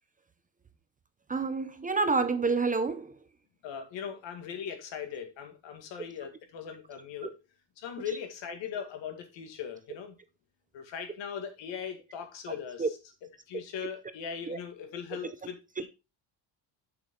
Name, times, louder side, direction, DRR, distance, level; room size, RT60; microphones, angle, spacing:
voice 1, 1.3-3.1 12.8-12.9 14.5-14.6, right 4 dB, 20° right, 0.5 m, -28 dB
voice 2, 3.6-7.4 7.8-10.2 10.7-13.0 13.5-15.9, left 7 dB, 80° left, 2.1 m, -39 dB
6.8 x 6.4 x 3.7 m
cardioid pair, 150°, 44 cm